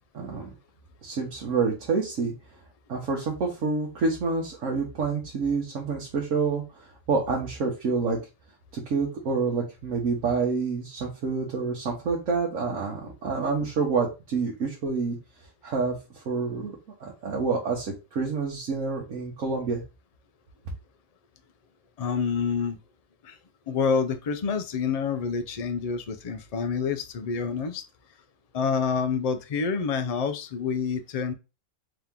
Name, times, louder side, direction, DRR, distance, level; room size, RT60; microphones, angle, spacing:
voice 1, 0.1-0.5 1.0-2.3 2.9-8.2 8.7-15.2 15.6-16.7 17.0-19.8, right 4 dB, 80° right, 1.3 m, -28 dB
voice 2, 22.0-22.8 23.2-23.4 23.7-27.8 28.5-31.3, left 5 dB, 60° left, 0.4 m, -27 dB
3.6 x 2.9 x 3.6 m
omnidirectional pair, 1.3 m